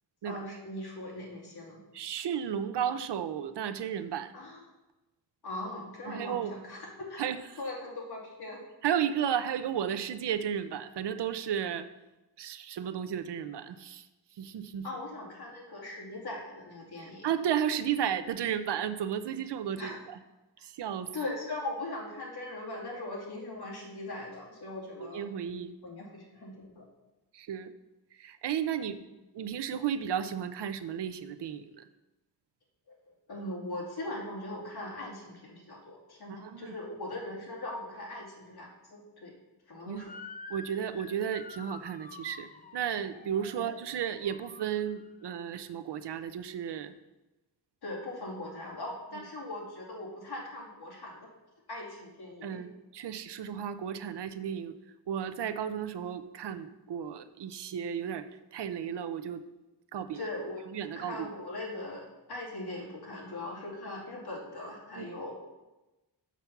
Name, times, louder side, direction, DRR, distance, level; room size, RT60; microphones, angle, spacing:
voice 1, 0.2-1.8 4.3-4.6 5.4-7.3 7.6-8.6 14.8-17.3 19.8-20.0 21.1-25.2 25.8-26.9 28.9-29.0 33.1-39.3 39.7-40.1 43.6-43.7 47.8-51.3 51.7-52.6 60.1-65.3, left 2 dB, 65° left, -2 dB, 2.4 m, -40 dB
voice 2, 1.9-4.4 6.1-6.5 7.2-7.4 8.8-11.9 12.4-14.1 14.4-14.9 17.2-20.2 20.6-21.1 25.0-25.7 27.3-27.7 28.1-29.0 29.3-31.8 36.3-36.7 39.9-40.0 40.5-46.9 52.4-52.7 52.9-54.7 55.1-59.5 59.9-60.3 60.7-61.3 65.0-65.1, right 9 dB, 75° right, 11 dB, 0.6 m, -33 dB
Motor vehicle (road) / Siren, 40.0-45.2, left 3 dB, 20° left, 0.4 m, -48 dB
6.7 x 6.2 x 5.8 m, 1.0 s
wide cardioid pair, 130°, 42 cm